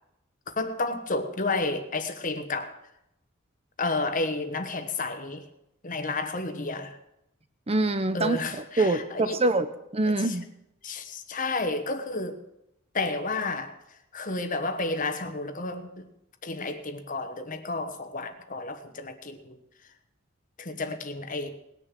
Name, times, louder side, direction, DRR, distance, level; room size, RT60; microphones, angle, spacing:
voice 1, 0.5-2.8 3.8-5.4 5.8-7.0 8.1-9.4 10.2-10.4 10.8-12.4 12.9-13.7 14.1-16.1 16.4-19.6 20.6-21.5, left 3 dB, 40° left, 8 dB, 1.2 m, -31 dB
voice 2, 7.7-8.4 8.8-10.5, right 2 dB, 30° right, 10 dB, 0.7 m, -25 dB
19.5 x 6.8 x 7.4 m, 0.85 s
head